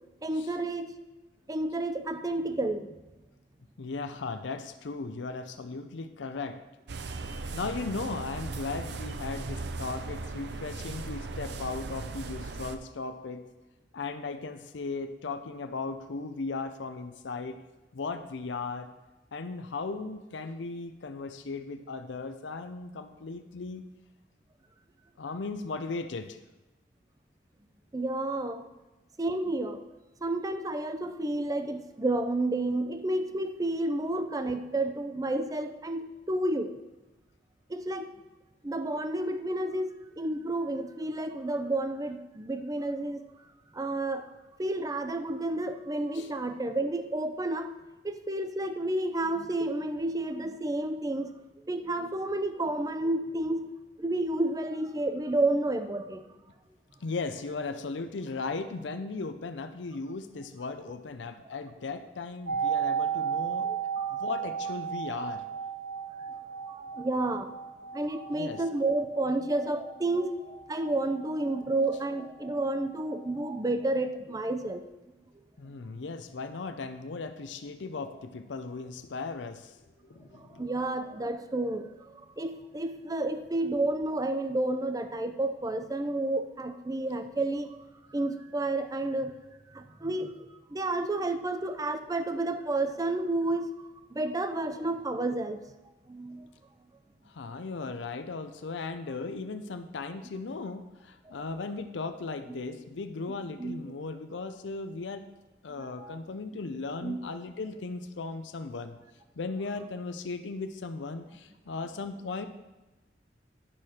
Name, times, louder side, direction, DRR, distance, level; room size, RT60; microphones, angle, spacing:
voice 1, 0.2-0.9 1.5-3.0 27.9-28.7 29.2-29.8 30.2-36.7 37.7-38.1 38.6-43.2 43.7-44.2 44.6-47.7 48.0-51.4 51.7-53.7 54.0-56.2 63.7-64.2 66.7-67.5 67.9-74.8 80.3-87.8 88.1-89.3 89.7-93.7 94.1-95.6 96.1-96.5 101.3-101.4 102.7-102.8 103.6-103.9 105.8-106.2 107.0-107.2, right 2 dB, 20° right, 8 dB, 0.5 m, -31 dB
voice 2, 3.8-6.6 7.5-13.4 13.9-17.6 17.9-18.9 19.3-23.8 25.2-26.4 46.1-46.3 57.0-63.7 64.1-65.4 68.3-68.6 75.6-79.8 80.1-80.6 97.3-105.3 105.6-109.0 109.4-112.5, left 3 dB, 85° left, 9 dB, 0.6 m, -37 dB
sound 1, 6.9-12.8, right 3 dB, 65° right, 0.6 m, -38 dB
sound 2, 62.5-72.2 72.5-72.6, right 7 dB, 85° right, 1.2 m, -34 dB
10.0 x 6.5 x 4.3 m, 1.1 s
head